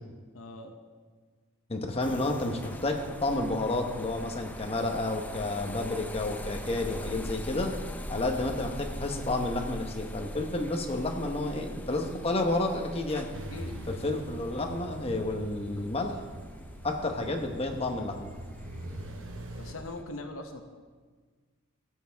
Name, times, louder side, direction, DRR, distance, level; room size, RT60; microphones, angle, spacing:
voice 1, 0.3-0.7 13.5-14.0 19.6-20.6, left 2 dB, 75° left, 5 dB, 0.9 m, -41 dB
voice 2, 1.7-7.7 8.1-13.3 14.0-16.2 16.8-18.3, left 2 dB, 30° left, 3 dB, 1.0 m, -30 dB
sound 1, 2.0-20.0, left 1 dB, 10° left, 0.4 m, -42 dB
sound 2, 13.3-19.7, right 1 dB, 65° right, 0.9 m, -43 dB
16.0 x 7.7 x 3.5 m, 1.5 s
head